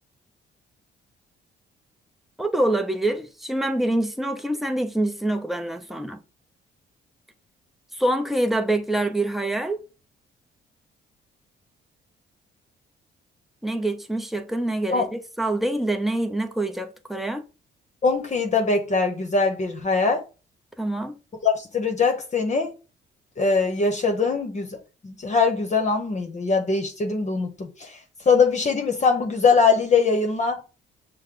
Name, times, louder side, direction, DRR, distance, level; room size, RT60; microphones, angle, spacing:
voice 1, 2.4-6.2 7.9-9.8 13.6-17.5 20.8-21.2, right 1 dB, ahead, 0.7 m, -25 dB
voice 2, 18.0-20.2 21.4-22.7 23.4-28.0 28.3-30.6, left 4 dB, 35° left, 1.0 m, -22 dB
6.4 x 2.2 x 3.8 m
cardioid pair, 90°, 20 cm